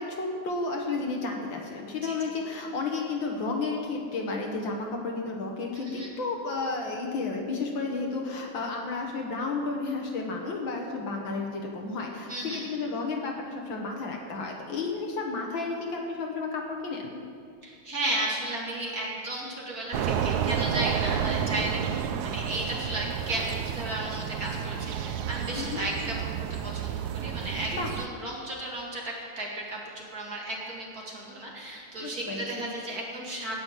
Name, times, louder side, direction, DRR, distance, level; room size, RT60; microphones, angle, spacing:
voice 1, 0.0-17.2 25.6-25.8 27.7-27.9 32.0-32.7, left 3 dB, 60° left, 1 dB, 2.1 m, -32 dB
voice 2, 5.7-6.1 12.3-12.7 17.6-21.8 22.2-33.5, right 1 dB, 40° right, -3 dB, 2.5 m, -34 dB
sound 1, 19.9-28.1, right 8 dB, 85° right, 0.8 m, -31 dB
17.5 x 6.3 x 7.5 m, 2.2 s
omnidirectional pair, 2.4 m